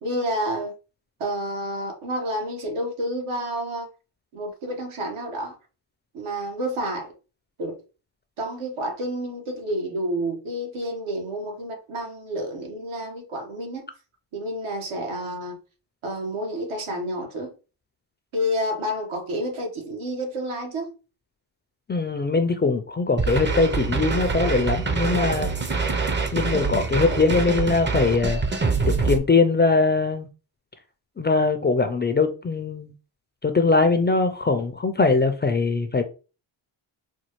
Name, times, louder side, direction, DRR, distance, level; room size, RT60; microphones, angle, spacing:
voice 1, 0.0-0.7 1.2-3.9 4.3-5.6 6.1-7.1 7.6-7.7 8.4-13.8 14.3-15.5 16.0-17.5 18.3-20.9, equal, 75° right, 1.4 m, -29 dB
voice 2, 21.9-25.5 26.3-28.4 29.0-30.3 31.2-32.9 33.4-36.0, left 3 dB, 25° left, 0.4 m, -21 dB
sound 1, 23.2-29.2, right 4 dB, 25° right, 0.6 m, -25 dB
4.2 x 2.2 x 3.0 m
cardioid pair, 75°, 50 cm